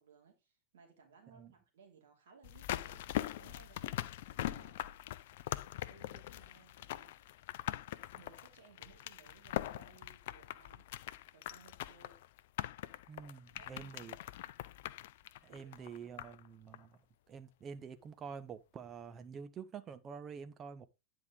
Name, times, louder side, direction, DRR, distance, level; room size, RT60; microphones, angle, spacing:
voice 1, 0.0-4.9 5.7-7.2 8.1-10.9 11.3-12.2 13.4-14.1 15.5-16.4, right 5 dB, 60° right, 2.8 m, -62 dB
sound 1, 2.4-16.5 16.7-16.8, left 14 dB, 55° left, 0.4 m, -42 dB
voice 2, 13.1-14.2 15.4-17.0 17.3-20.9, right 6 dB, 25° right, 0.8 m, -48 dB
9.6 x 4.9 x 3.7 m
figure-of-eight pair, 90°, 0 cm